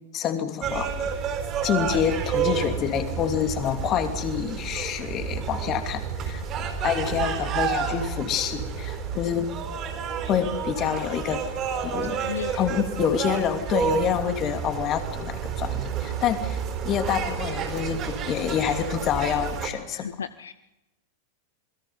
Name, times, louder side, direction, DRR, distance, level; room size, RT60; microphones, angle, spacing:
voice 1, 0.1-0.9 1.6-6.4 6.8-9.5 10.3-11.4 11.8-12.3 12.5-20.1, left 9 dB, 35° left, 7 dB, 2.8 m, -27 dB
sound 1, 0.6-19.7, right 7 dB, 30° right, 4.2 m, -30 dB
voice 2, 12.1-12.6 19.9-20.5, left 7 dB, 70° left, 15 dB, 0.7 m, -35 dB
28.0 x 21.0 x 5.6 m, 0.95 s
figure-of-eight pair, 90°, 0 cm